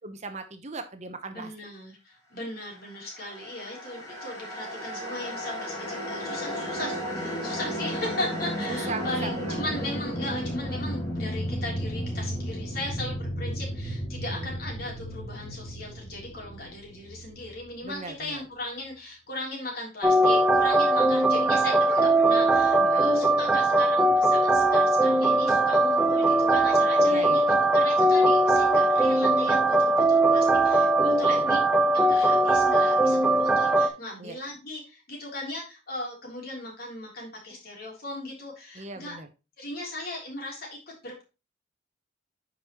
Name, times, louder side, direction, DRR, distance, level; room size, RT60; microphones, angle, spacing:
voice 1, 0.0-1.5 8.7-9.6 14.3-14.5 17.8-18.4 22.8-23.1 27.0-27.4 31.3-31.5 34.2-34.4 38.7-39.3, right 3 dB, 40° right, 8 dB, 0.9 m, -38 dB
voice 2, 1.3-31.6 31.9-39.2 39.6-41.2, left 1 dB, 55° left, -2 dB, 3.4 m, -37 dB
sound 1, 3.2-18.4, equal, 20° left, 3.2 m, -34 dB
sound 2, 20.0-33.9, right 2 dB, 5° right, 0.9 m, -21 dB
10.0 x 5.2 x 3.0 m, 0.29 s
head